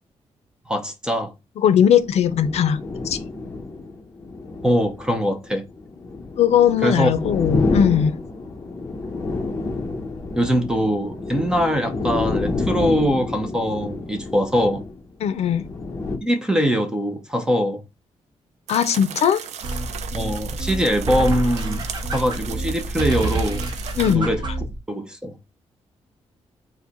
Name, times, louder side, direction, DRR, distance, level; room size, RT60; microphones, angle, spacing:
voice 1, 0.7-1.3 4.6-5.7 6.8-7.1 10.3-14.8 16.2-17.8 20.1-23.6 24.1-24.4 24.9-25.4, equal, 5° right, 0.6 m, -22 dB
voice 2, 1.6-2.8 3.0-3.2 6.4-8.1 15.2-15.7 18.7-19.4 24.0-24.3, left 9 dB, 70° left, 0.5 m, -18 dB
sound 1, 2.0-16.2, left 3 dB, 25° left, 0.8 m, -29 dB
sound 2, 18.7-24.2, right 8 dB, 85° right, 0.4 m, -36 dB
sound 3, 19.6-24.8, right 2 dB, 40° right, 0.8 m, -27 dB
4.8 x 2.2 x 4.0 m
wide cardioid pair, 175°, 11 cm